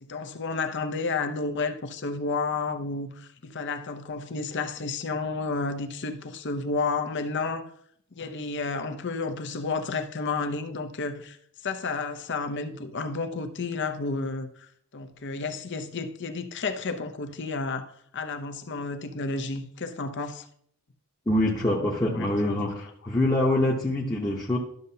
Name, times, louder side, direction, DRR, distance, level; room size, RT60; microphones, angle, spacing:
voice 1, 0.0-7.7 8.2-11.4 11.6-14.5 14.9-20.5 22.1-22.7, left 4 dB, 55° left, 0.7 m, -31 dB
voice 2, 21.3-24.6, left 1 dB, 15° left, 0.9 m, -25 dB
12.0 x 6.6 x 2.8 m
head